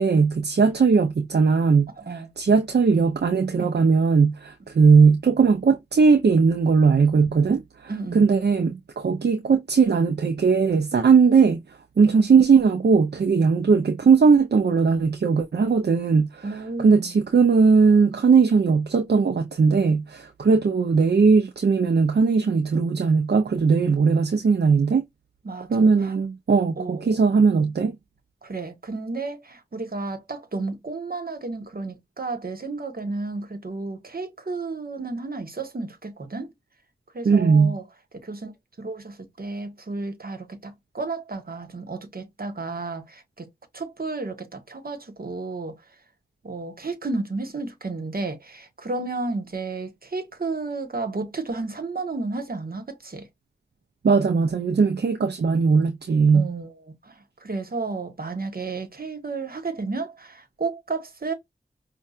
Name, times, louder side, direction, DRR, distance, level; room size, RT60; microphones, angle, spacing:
voice 1, 0.0-11.6 12.0-16.5 16.8-25.0 25.7-28.0 37.2-37.7 54.0-56.5, right 5 dB, 80° right, 0.5 m, -19 dB
voice 2, 2.0-2.3 7.9-8.3 16.4-17.1 25.4-26.1 26.8-27.4 28.4-36.5 37.1-37.8 38.1-38.5 38.8-43.5 43.7-45.8 46.4-53.3 56.3-56.7 57.0-61.3, right 3 dB, 60° right, 1.2 m, -32 dB
5.4 x 2.3 x 2.4 m
wide cardioid pair, 45°, 17 cm